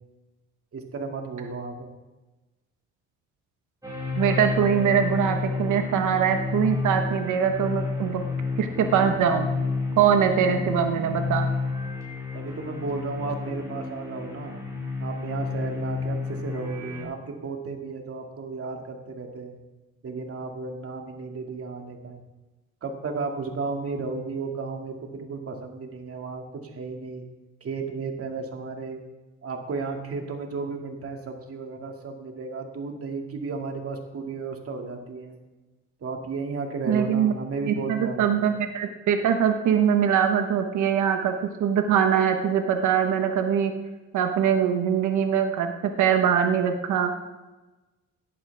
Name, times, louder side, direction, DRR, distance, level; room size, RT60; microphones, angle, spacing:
voice 1, 0.7-1.9 12.3-14.6 15.0-19.6 20.0-22.2 22.8-27.3 27.6-29.0 29.4-35.4 36.0-38.5, right 4 dB, 50° right, 3 dB, 2.3 m, -34 dB
sound 1, 3.8-17.0, left 4 dB, 10° right, 4.9 m, -30 dB
voice 2, 4.1-8.2 8.6-9.5 10.0-11.5 36.9-37.3 37.7-41.3 41.6-43.7 44.1-45.7 46.0-47.1, right 8 dB, 75° right, 5 dB, 1.2 m, -22 dB
17.5 x 11.0 x 3.5 m, 1.1 s
cardioid pair, 90°, 30 cm